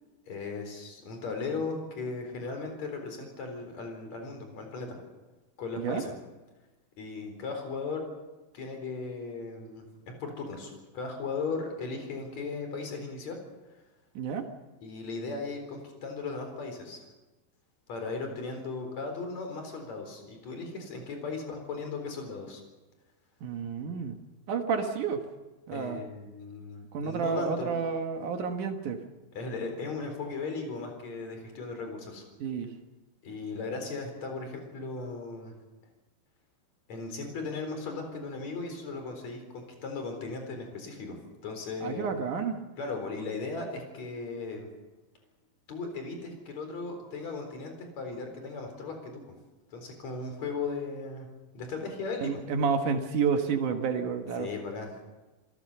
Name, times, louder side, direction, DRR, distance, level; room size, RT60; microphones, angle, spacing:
voice 1, 0.3-5.0 5.6-6.1 7.0-8.0 8.5-9.9 10.2-13.4 14.8-17.0 17.9-22.6 25.7-27.7 29.3-32.2 33.2-35.5 36.9-42.0 42.8-44.7 45.7-49.2 49.7-51.3 51.5-52.3 54.4-55.1, left 4 dB, 40° left, 4 dB, 5.0 m, -37 dB
voice 2, 14.2-14.5 23.4-24.2 24.5-25.3 25.7-26.0 26.9-29.0 32.4-32.7 41.8-42.6 52.2-54.5, right 6 dB, 65° right, 5 dB, 2.1 m, -30 dB
27.0 x 16.5 x 6.8 m, 1.2 s
omnidirectional pair, 5.3 m